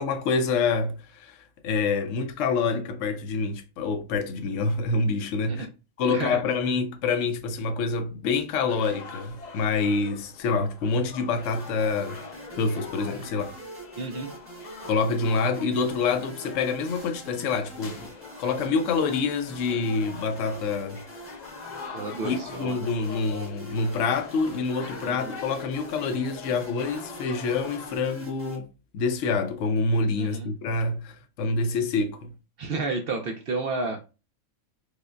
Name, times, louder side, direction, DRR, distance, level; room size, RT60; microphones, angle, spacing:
voice 1, 0.0-1.4 1.6-5.7 6.0-12.2 12.5-13.6 14.8-18.1 18.4-21.0 22.2-28.7 28.9-32.3, left 4 dB, 65° left, 0.9 m, -27 dB
voice 2, 6.0-6.4 14.0-14.3 21.9-22.8 25.0-25.3 30.2-30.5 32.6-34.0, right 3 dB, 65° right, 0.6 m, -31 dB
sound 1, 8.7-28.0, left 5 dB, 85° left, 0.4 m, -43 dB
sound 2, 11.4-28.6, right 2 dB, 10° right, 0.8 m, -45 dB
4.9 x 2.0 x 2.4 m
omnidirectional pair, 1.5 m